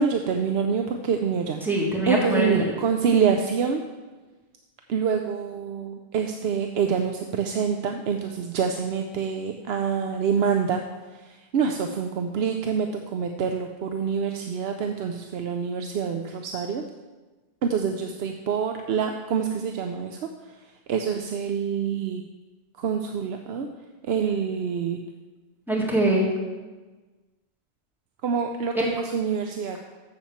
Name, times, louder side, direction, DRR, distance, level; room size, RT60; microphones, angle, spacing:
voice 1, 0.0-1.6 2.1-3.8 4.9-10.8 11.5-16.8 17.6-20.2 20.9-22.2 22.8-23.7 24.1-25.0 28.2-29.8, right 6 dB, 75° right, 5 dB, 0.8 m, -26 dB
voice 2, 1.6-2.7 25.7-26.3, right 1 dB, ahead, -3 dB, 1.9 m, -23 dB
7.2 x 7.1 x 7.1 m, 1.3 s
omnidirectional pair, 1.1 m